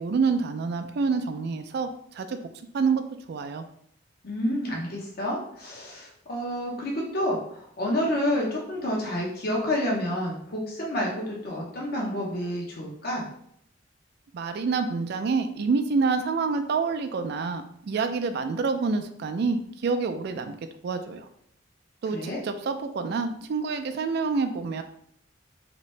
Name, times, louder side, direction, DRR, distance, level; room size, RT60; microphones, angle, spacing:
voice 1, 0.0-2.4 2.7-3.0 3.3-3.7 14.3-20.5 20.8-21.3 22.0-24.8, right 4 dB, 55° right, 8 dB, 0.3 m, -27 dB
voice 2, 4.2-13.3 22.1-22.4, left 1 dB, 55° left, -2 dB, 0.7 m, -29 dB
2.9 x 2.6 x 3.1 m, 0.69 s
head